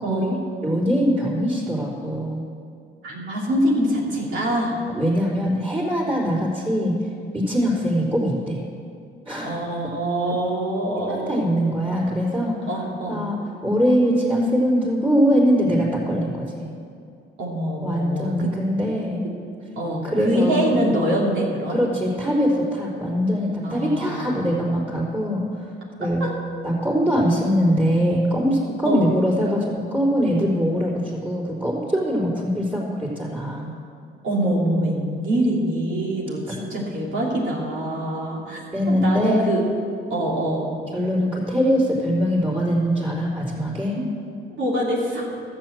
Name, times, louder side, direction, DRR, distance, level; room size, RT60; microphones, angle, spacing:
voice 1, 0.0-0.4 3.0-4.7 9.4-11.4 12.7-13.2 17.4-18.5 19.8-21.8 23.6-24.5 26.2-26.3 28.8-29.1 34.2-38.6 38.9-39.6 40.1-40.7 44.0-44.1 44.5-45.3, right 1 dB, 75° right, -4 dB, 3.0 m, -24 dB
voice 2, 0.6-2.4 4.9-6.9 7.3-8.6 9.3-9.5 11.1-12.7 13.1-13.4 13.6-16.7 17.8-19.2 20.0-20.8 21.7-25.7 26.0-26.3 26.6-29.6 29.9-33.7 36.5-36.6 38.7-39.5 40.9-44.0, equal, 25° right, -10 dB, 3.9 m, -22 dB
12.5 x 7.7 x 7.6 m, 2.5 s
cardioid pair, 90°, 20 cm